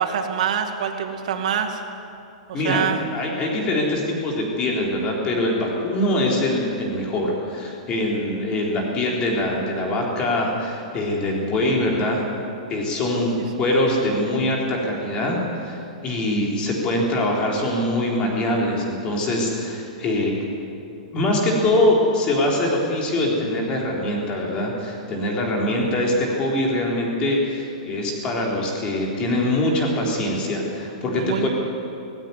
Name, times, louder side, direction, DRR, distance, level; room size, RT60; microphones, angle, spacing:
voice 1, 0.0-1.8 2.5-3.1 13.4-13.5 31.1-31.5, right 8 dB, 65° right, 5 dB, 2.3 m, -25 dB
voice 2, 2.5-12.2 12.7-20.3 21.1-31.5, left 1 dB, 20° left, -1 dB, 3.8 m, -23 dB
18.0 x 16.0 x 9.4 m, 2.6 s
hypercardioid pair, 165°, 4 cm